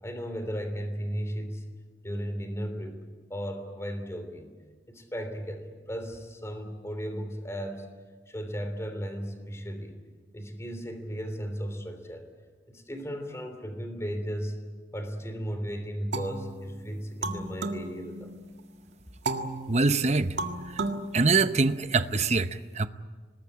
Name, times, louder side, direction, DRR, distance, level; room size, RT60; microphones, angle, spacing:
voice 1, 0.0-1.6 2.0-3.0 3.3-4.5 4.9-7.9 8.3-10.0 10.3-12.3 12.7-14.6 14.9-18.3, equal, 15° left, 8 dB, 3.2 m, -35 dB
sound 1, 16.1-18.6 19.3-22.1, right 2 dB, 75° right, 1.9 m, -35 dB
voice 2, 19.7-20.4 20.6-20.8 21.1-22.9, right 3 dB, 40° right, 11 dB, 0.8 m, -24 dB
25.5 x 20.5 x 8.6 m, 1.4 s
head